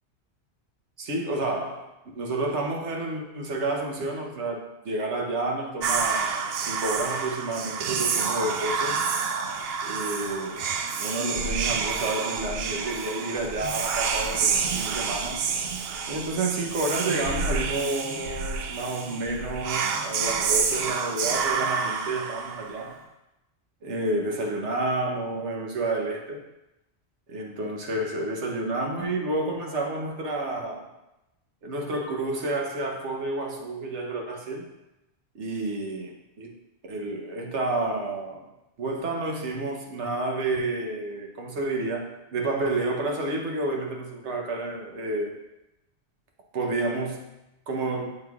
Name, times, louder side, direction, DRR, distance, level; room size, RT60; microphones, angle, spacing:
voice 1, 1.0-1.9 2.1-9.0 9.8-10.6 11.0-15.5 16.1-23.0 23.8-26.4 27.3-30.9 31.6-34.7 35.4-36.5 36.9-38.4 38.8-45.4 46.5-47.3 47.7-48.1, right 2 dB, 85° right, 1 dB, 1.2 m, -30 dB
Whispering, 5.8-22.9, right 5 dB, 65° right, 0.7 m, -28 dB
7.8 x 5.4 x 2.3 m, 0.95 s
omnidirectional pair, 1.2 m